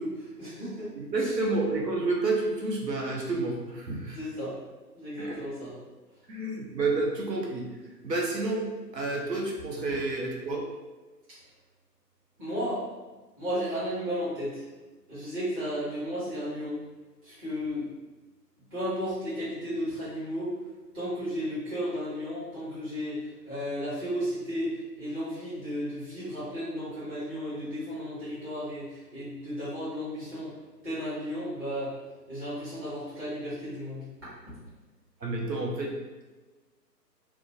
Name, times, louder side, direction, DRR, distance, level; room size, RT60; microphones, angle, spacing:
voice 1, 0.0-0.9 1.2-1.3 4.1-4.6 4.9-5.8 9.9-10.0 12.4-12.8 13.4-14.6 15.1-16.8 17.2-17.9 18.7-20.5 20.9-24.7 25.0-30.5 30.8-32.0 32.3-34.0 34.5-34.6, equal, 15° right, -15 dB, 0.8 m, -34 dB
voice 2, 0.9-4.2 5.2-5.4 6.3-7.7 8.0-8.7 8.9-10.6 35.2-35.9, right 2 dB, 80° right, -1 dB, 0.8 m, -29 dB
2.4 x 2.1 x 2.7 m, 1.2 s
figure-of-eight pair, 135°, 49 cm